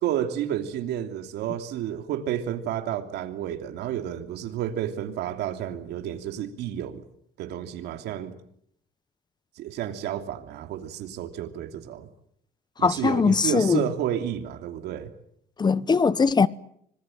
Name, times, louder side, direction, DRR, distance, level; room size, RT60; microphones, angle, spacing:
voice 1, 0.0-7.0 7.4-8.3 9.6-12.1 12.8-15.1, right 10 dB, 80° right, 3.1 m, -31 dB
voice 2, 12.8-13.8 15.6-16.5, left 5 dB, 25° left, 1.0 m, -20 dB
25.5 x 21.5 x 9.2 m
cardioid pair, 110°, 17 cm